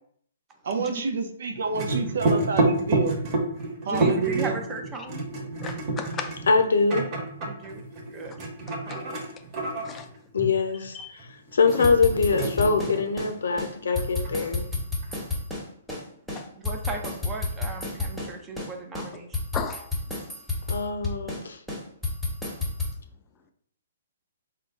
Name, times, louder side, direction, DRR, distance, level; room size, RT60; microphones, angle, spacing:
voice 1, 0.6-3.2 3.8-4.6, right 5 dB, 70° right, 6 dB, 0.6 m, -28 dB
sound 1, 1.5-13.5 13.7-15.2, right 2 dB, 35° right, 1.2 m, -29 dB
voice 2, 3.8-5.2 7.4-8.4 16.6-19.4, right 2 dB, 20° right, 3 dB, 0.6 m, -36 dB
voice 3, 5.6-6.3 8.9-9.0 9.8-10.1 10.9-11.1 11.7-11.9 16.4-16.5 19.5-19.9, left 6 dB, 20° left, 5 dB, 0.4 m, -34 dB
voice 4, 6.5-7.1 10.3-14.6 20.7-21.6, left 4 dB, 80° left, 6 dB, 0.6 m, -23 dB
sound 2, 11.7-13.3 13.6-13.7 14.0-16.0 16.3-18.3 18.6-18.7 18.9-21.4 21.7-22.9, left 3 dB, 5° right, 1.1 m, -30 dB
3.8 x 2.2 x 3.7 m, 0.63 s
hypercardioid pair, 135°, 0 cm